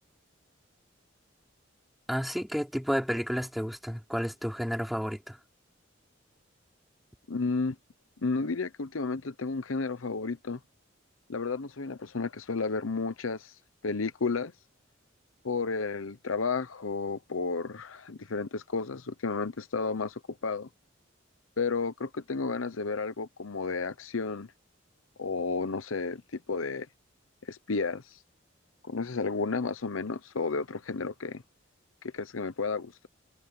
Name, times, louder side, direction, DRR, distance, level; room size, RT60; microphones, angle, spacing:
voice 1, 2.1-5.4, equal, ahead, 3.7 m, -31 dB
voice 2, 7.3-7.8 8.2-10.6 11.3-13.5 13.8-14.5 15.4-20.7 21.6-24.5 25.2-26.9 27.4-28.0 28.8-31.4 32.1-33.1, left 4 dB, 90° left, 0.9 m, -32 dB
head